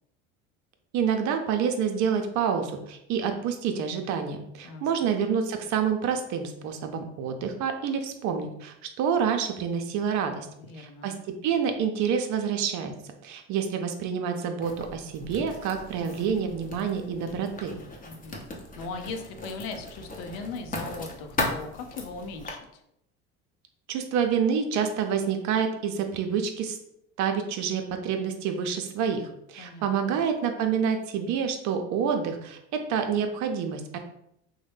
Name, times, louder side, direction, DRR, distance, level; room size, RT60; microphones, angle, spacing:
voice 1, 0.9-10.5 10.8-11.1 11.4-12.9 13.2-17.7 23.9-26.8 27.2-34.0, right 7 dB, 60° right, 6 dB, 0.6 m, -28 dB
voice 2, 4.6-5.1 10.6-11.1 18.0-18.4 18.8-22.8 29.6-30.2, left 4 dB, 75° left, 5 dB, 0.6 m, -39 dB
Writing, 14.6-22.5, left 2 dB, 25° left, 0.7 m, -37 dB
3.0 x 2.1 x 3.3 m, 0.77 s
hypercardioid pair, 75°, 33 cm